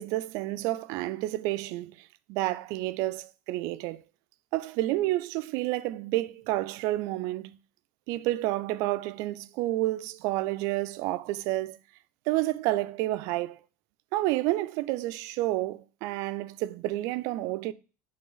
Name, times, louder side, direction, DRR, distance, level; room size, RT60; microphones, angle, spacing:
voice 1, 0.0-4.0 4.5-7.6 8.1-11.8 12.3-13.6 14.1-17.7, right 17 dB, 55° right, 0.4 m, -30 dB
7.6 x 3.3 x 3.9 m
cardioid pair, 170°, 7 cm